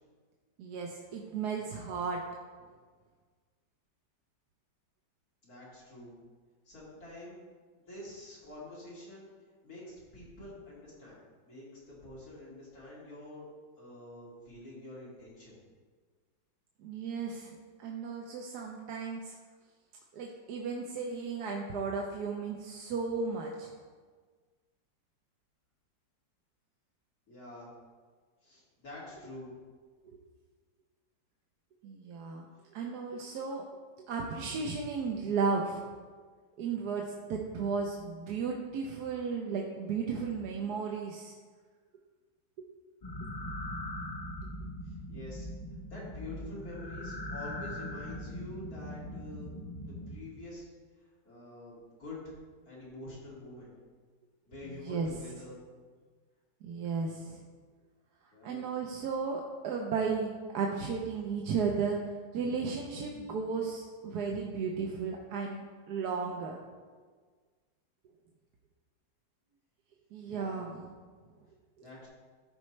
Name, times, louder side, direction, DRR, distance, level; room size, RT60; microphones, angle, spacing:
voice 1, 0.6-2.2 16.8-19.4 20.1-23.7 30.1-30.2 31.8-32.5 32.7-33.6 34.0-35.8 36.6-41.3 42.6-42.7 54.9-55.1 56.6-57.4 58.4-62.0 62.3-66.6 70.1-70.9, right 5 dB, 65° right, 0 dB, 1.2 m, -34 dB
voice 2, 5.4-6.1 6.6-7.4 7.8-9.3 9.6-11.2 11.4-13.5 13.8-15.5 27.3-27.7 28.4-29.5 33.3-33.4 44.8-45.5 45.8-49.5 49.8-50.7 51.2-52.2 52.7-53.7 54.5-55.6 58.3-58.6 70.3-70.7 71.8-72.1, left 2 dB, 50° left, -7 dB, 2.9 m, -47 dB
sound 1, 43.0-50.1, left 1 dB, 30° left, 0.8 m, -41 dB
14.0 x 5.2 x 3.2 m, 1.5 s
omnidirectional pair, 2.0 m